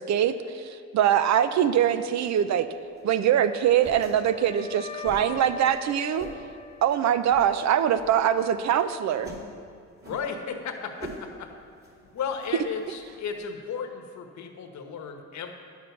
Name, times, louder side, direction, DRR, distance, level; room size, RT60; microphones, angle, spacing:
voice 1, 0.0-2.7 3.0-6.3 6.8-9.3, right 10 dB, 65° right, 12 dB, 0.6 m, -23 dB
sound 1, 2.7-13.4, right 1 dB, 45° right, 3.1 m, -46 dB
Wind instrument woodwind instrument, 3.4-7.5, left 5 dB, 20° left, 0.4 m, -42 dB
voice 2, 10.1-11.5 12.1-15.5, left 6 dB, 70° left, 5 dB, 1.2 m, -34 dB
10.0 x 7.3 x 5.9 m, 2.3 s
cardioid pair, 90°, 30 cm